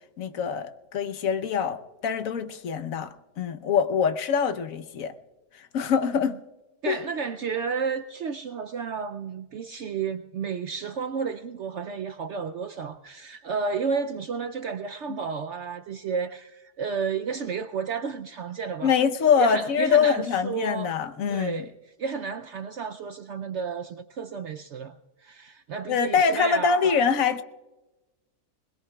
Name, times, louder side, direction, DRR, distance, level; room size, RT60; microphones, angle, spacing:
voice 1, 0.2-5.1 5.5-6.4 6.9-7.0 15.1-15.2 18.8-21.6 25.9-27.4, left 6 dB, 60° left, 1.2 m, -24 dB
voice 2, 6.8-18.9 19.4-20.9 21.3-21.7 22.0-27.0, right 5 dB, 70° right, 0.7 m, -32 dB
21.5 x 21.0 x 2.3 m
omnidirectional pair, 1.7 m